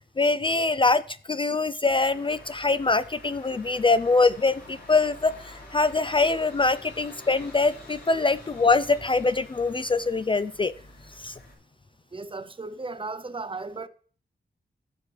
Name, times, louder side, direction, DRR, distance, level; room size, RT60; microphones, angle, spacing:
voice 1, 0.2-1.0 1.3-10.7 11.2-11.3, left 3 dB, 30° left, 0.4 m, -23 dB
sound 1, 1.9-11.5, left 1 dB, 75° left, 4.5 m, -47 dB
voice 2, 12.1-13.9, right 3 dB, 30° right, 0.7 m, -35 dB
15.5 x 6.4 x 3.4 m
wide cardioid pair, 110°, 18 cm